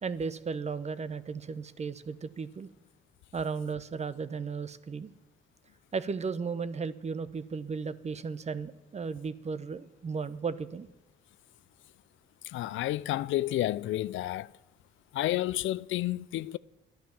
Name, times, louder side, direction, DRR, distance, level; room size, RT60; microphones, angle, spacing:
voice 1, 0.0-2.7 3.3-5.1 5.9-10.9, right 5 dB, 35° right, 0.8 m, -35 dB
voice 2, 12.5-14.5 15.1-16.6, left 15 dB, 75° left, 0.4 m, -30 dB
11.5 x 10.5 x 7.1 m
cardioid pair, 90°, 20 cm